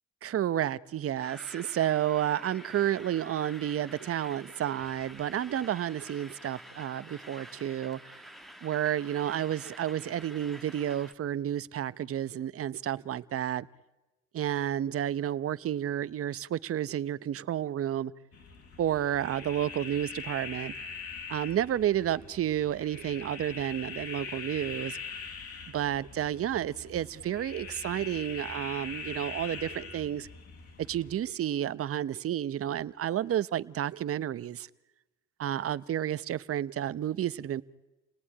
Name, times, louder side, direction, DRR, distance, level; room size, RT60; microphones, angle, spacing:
voice 1, 0.2-8.2 8.6-13.7 14.3-18.1 18.8-20.7 21.3-25.0 25.7-30.3 30.8-34.7 35.4-37.6, right 11 dB, 50° right, 0.9 m, -31 dB
sound 1, 1.2-11.1, equal, ahead, 1.6 m, -49 dB
sound 2, 18.3-31.2, left 5 dB, 55° left, 4.7 m, -42 dB
29.5 x 18.5 x 10.0 m
cardioid pair, 90°, 29 cm